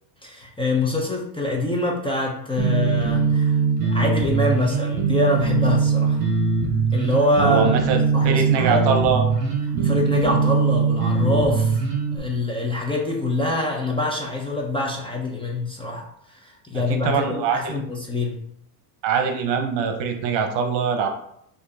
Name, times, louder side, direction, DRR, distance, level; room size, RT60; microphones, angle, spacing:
voice 1, 0.2-6.2 6.9-7.8 8.1-9.0 9.8-11.8 12.1-16.1 16.3-18.4, left 2 dB, 10° left, -1 dB, 0.6 m, -25 dB
sound 1, 2.6-12.2, right 5 dB, 30° right, 1.4 m, -21 dB
voice 2, 7.4-9.3 9.7-10.0 16.7-17.8 19.0-21.1, right 6 dB, 60° right, 4 dB, 0.9 m, -23 dB
4.4 x 2.8 x 4.0 m, 0.72 s
cardioid pair, 115°, 49 cm